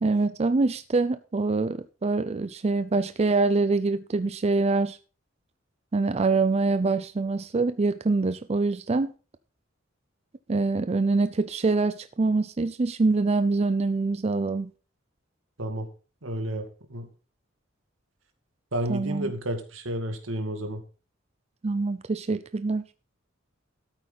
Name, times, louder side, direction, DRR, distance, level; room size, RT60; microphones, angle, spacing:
voice 1, 0.0-5.0 5.9-9.1 10.5-14.7 18.9-19.3 21.6-22.8, right 3 dB, 30° right, 0.5 m, -25 dB
voice 2, 16.2-17.1 18.7-20.8, right 1 dB, 80° right, 2.2 m, -31 dB
13.0 x 8.5 x 4.0 m
head